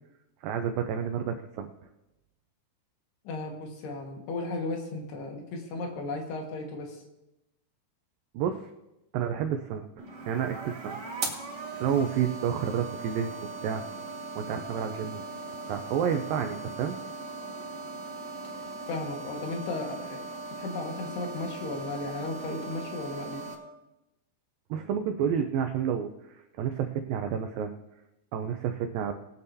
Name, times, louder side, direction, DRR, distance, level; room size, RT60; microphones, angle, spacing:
voice 1, 0.4-1.7 8.3-8.7 9.1-9.9 10.3-11.0 11.7-13.3 13.6-13.8 14.3-15.2 15.7-17.0 24.7-27.7 28.3-29.1, right 8 dB, 85° right, 6 dB, 2.0 m, -30 dB
voice 2, 3.3-7.0 18.9-20.2 20.6-23.4, left 2 dB, 75° left, 2 dB, 3.7 m, -35 dB
sound 1, 10.0-23.5, right 3 dB, 50° right, 1.3 m, -39 dB
21.0 x 8.9 x 2.7 m, 0.95 s
omnidirectional pair, 4.8 m